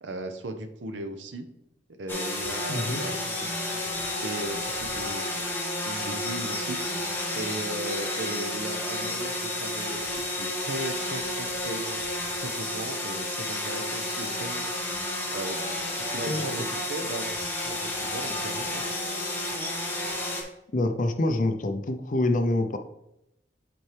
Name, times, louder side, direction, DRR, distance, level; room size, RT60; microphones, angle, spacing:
voice 1, 0.0-1.4 2.0-3.9 4.2-5.5 5.8-6.8 7.3-14.7 15.3-18.9, right 2 dB, 70° right, 6 dB, 0.7 m, -37 dB
sound 1, 2.1-20.4, left 1 dB, 10° left, 1.2 m, -31 dB
voice 2, 2.7-3.0 16.3-16.4 20.7-22.8, left 2 dB, 45° left, 7 dB, 0.6 m, -26 dB
9.1 x 4.4 x 3.3 m, 0.84 s
head